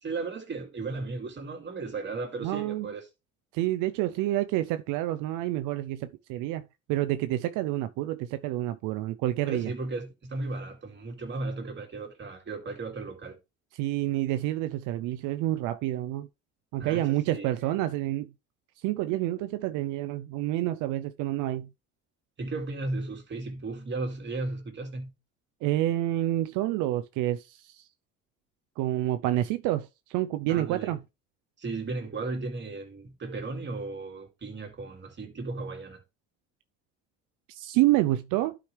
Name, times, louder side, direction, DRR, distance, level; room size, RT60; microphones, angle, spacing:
voice 1, 0.0-3.0 9.5-13.4 16.8-17.5 22.4-25.1 30.5-30.9 31.6-36.0, right 3 dB, 35° right, 2.7 m, -35 dB
voice 2, 2.4-2.9 3.5-9.7 13.7-16.3 16.7-18.3 18.8-21.7 25.6-27.9 28.8-31.0 37.5-38.6, right 15 dB, 80° right, 0.6 m, -28 dB
11.5 x 5.1 x 3.3 m
supercardioid pair, 90°, 30 cm